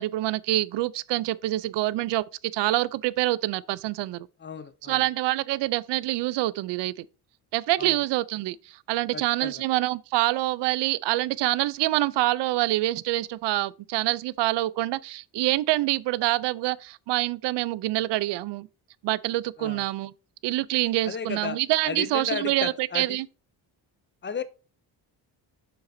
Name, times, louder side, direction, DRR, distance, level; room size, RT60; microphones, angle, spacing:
voice 1, 0.0-2.2 2.5-4.3 4.8-7.1 7.5-18.7 19.0-20.1 20.4-23.3, right 16 dB, 75° right, 0.5 m, -26 dB
voice 2, 4.4-5.0 7.8-8.0 9.1-9.5 19.6-19.8 21.0-21.6 21.9-23.2 24.2-24.4, left 6 dB, 25° left, 0.5 m, -34 dB
7.9 x 7.0 x 2.6 m
cardioid pair, 130°, 42 cm